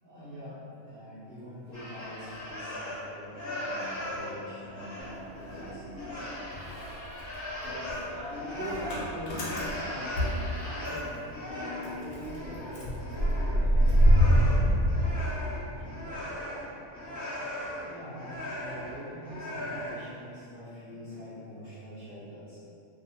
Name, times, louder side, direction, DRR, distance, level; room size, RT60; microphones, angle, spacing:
voice 1, 0.0-6.7 7.1-7.2 15.7-16.0 17.9-22.6, equal, 50° right, -11 dB, 0.7 m, -45 dB
sound 1, 1.7-3.1 3.3-20.0, left 1 dB, 25° left, 0.4 m, -38 dB
Motor vehicle (road) / Engine starting, 5.0-6.2 6.5-11.2 11.5-11.6 11.8-15.9, equal, 65° left, 0.9 m, -26 dB
voice 2, 7.6-14.4, left 1 dB, 75° right, -7 dB, 1.1 m, -41 dB
2.6 x 2.0 x 2.7 m, 2.7 s
omnidirectional pair, 1.4 m